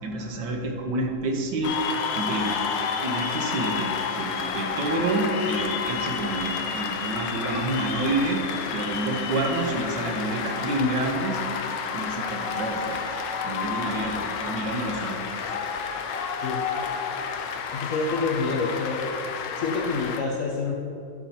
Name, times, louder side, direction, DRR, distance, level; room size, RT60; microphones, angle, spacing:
voice 1, 0.0-1.7 2.1-2.6 3.0-8.4 8.7-11.4 11.9-15.5, right 2 dB, 80° right, 2 dB, 1.7 m, -28 dB
Cheering / Applause, 1.6-20.2, left 6 dB, 80° left, 1.3 m, -30 dB
voice 2, 17.7-19.2 19.6-20.8, left 4 dB, 65° left, 2 dB, 0.8 m, -27 dB
11.5 x 4.2 x 5.7 m, 2.6 s
omnidirectional pair, 1.9 m